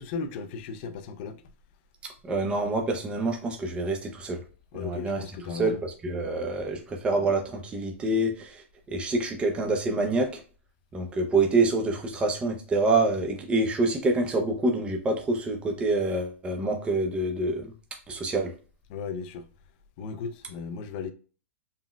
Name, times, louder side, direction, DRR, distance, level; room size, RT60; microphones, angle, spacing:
voice 1, 0.0-1.4 4.7-5.8 6.7-6.8 18.9-19.5 20.0-21.1, left 5 dB, 45° left, 0.4 m, -36 dB
voice 2, 2.3-4.4 4.8-5.2 5.5-10.4 10.9-17.7 18.1-18.5, right 2 dB, 15° right, 0.5 m, -26 dB
3.9 x 2.0 x 2.2 m
hypercardioid pair, 135°, 7 cm